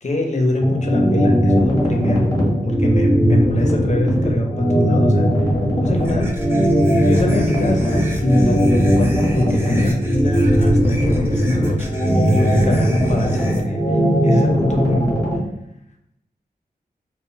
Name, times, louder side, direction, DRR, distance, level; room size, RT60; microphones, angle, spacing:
voice 1, 0.0-2.3 2.6-5.3 5.8-6.3 7.0-11.9 12.1-13.8 14.2-15.2, left 1 dB, 45° left, 2 dB, 0.6 m, -23 dB
sound 1, 0.6-15.4, equal, 20° left, 0.8 m, -18 dB
sound 2, 6.0-13.6, equal, 15° right, 0.6 m, -32 dB
2.1 x 2.0 x 3.7 m, 0.81 s
wide cardioid pair, 70°, 16 cm